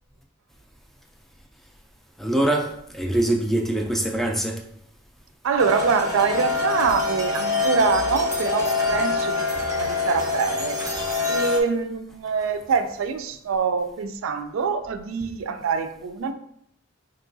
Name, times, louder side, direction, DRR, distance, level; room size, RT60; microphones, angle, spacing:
voice 1, 2.2-4.6, right 1 dB, ahead, 0.3 m, -23 dB
voice 2, 5.4-16.3, right 5 dB, 70° right, 0.4 m, -25 dB
sound 1, 5.6-11.6, left 4 dB, 15° right, 0.8 m, -25 dB
4.6 x 3.0 x 2.6 m
head